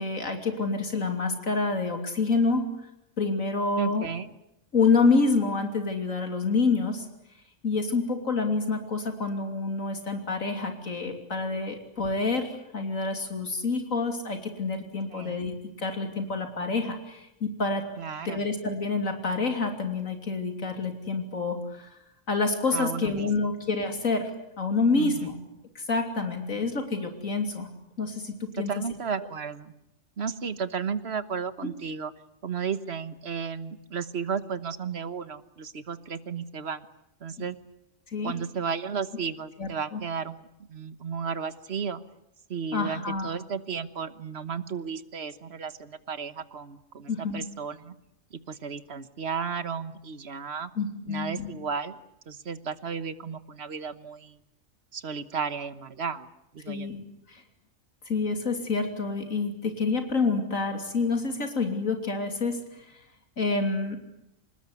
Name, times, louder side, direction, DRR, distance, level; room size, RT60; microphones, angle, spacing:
voice 1, 0.0-2.7 3.2-4.1 4.7-7.1 7.6-17.9 18.3-21.9 22.3-24.3 24.6-25.3 25.8-27.7 28.0-28.7 29.2-29.3 31.6-31.7 37.4-37.5 38.1-38.3 39.6-40.0 42.7-43.3 47.1-47.4 50.8-51.5 56.7-57.0 57.3-57.4 58.1-62.9 63.4-64.0, left 4 dB, 80° left, 6 dB, 3.5 m, -27 dB
voice 2, 3.8-4.3 15.1-15.4 18.0-18.4 22.7-23.3 24.9-25.1 28.6-29.7 30.2-32.1 32.4-36.9 37.2-37.6 38.2-42.0 42.5-47.9 48.5-50.7 51.1-52.0 52.3-54.3 54.9-56.3 56.5-56.9, right 6 dB, 55° right, 14 dB, 1.4 m, -33 dB
26.0 x 20.5 x 9.7 m, 0.84 s
omnidirectional pair, 1.4 m